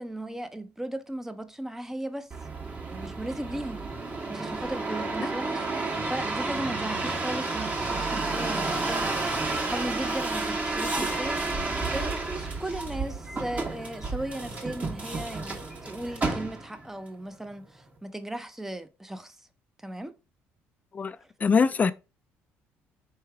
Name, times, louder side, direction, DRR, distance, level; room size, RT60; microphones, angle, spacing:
voice 1, 0.0-3.9 4.3-19.5 19.8-20.1, right 1 dB, 5° right, 0.7 m, -37 dB
sound 1, 2.3-16.9 17.4-18.0, right 3 dB, 30° right, 1.5 m, -31 dB
voice 2, 21.4-21.9, left 5 dB, 30° left, 0.4 m, -22 dB
4.5 x 3.2 x 3.4 m
supercardioid pair, 85°, 5 cm